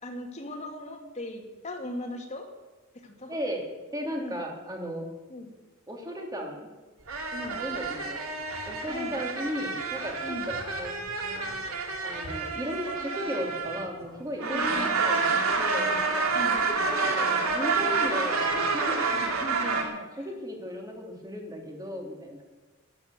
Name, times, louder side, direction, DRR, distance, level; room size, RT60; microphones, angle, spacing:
voice 1, 0.0-2.5 3.0-3.4 4.2-4.4 5.3-5.6 7.3-7.6 8.9-9.2 10.2-10.5 14.5-15.0 16.3-16.6 19.1-20.3, left 1 dB, 30° left, 2 dB, 2.6 m, -39 dB
voice 2, 3.3-5.0 5.9-6.6 7.5-8.2 8.7-10.9 12.0-15.9 16.5-16.6 16.9-19.1 20.2-22.4, equal, 15° right, 1 dB, 3.0 m, -35 dB
sound 1, 7.1-14.0 14.4-19.8, right 4 dB, 85° right, 2.7 m, -28 dB
13.0 x 10.5 x 8.4 m, 1.2 s
head